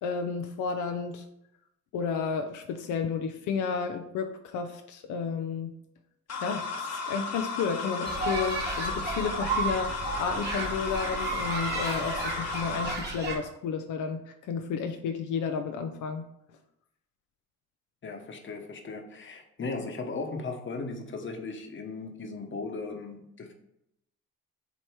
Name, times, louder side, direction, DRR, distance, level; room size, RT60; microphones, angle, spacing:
voice 1, 0.0-1.2 1.9-5.7 6.4-16.2, left 5 dB, 80° left, 6 dB, 0.6 m, -32 dB
sound 1, 6.3-12.9, left 4 dB, 60° left, 1.1 m, -34 dB
sound 2, 8.0-13.3, right 3 dB, 35° right, 1.8 m, -33 dB
voice 2, 18.0-23.5, left 3 dB, 40° left, 5 dB, 1.1 m, -37 dB
8.0 x 2.9 x 4.6 m, 0.81 s
cardioid pair, 90°, 30 cm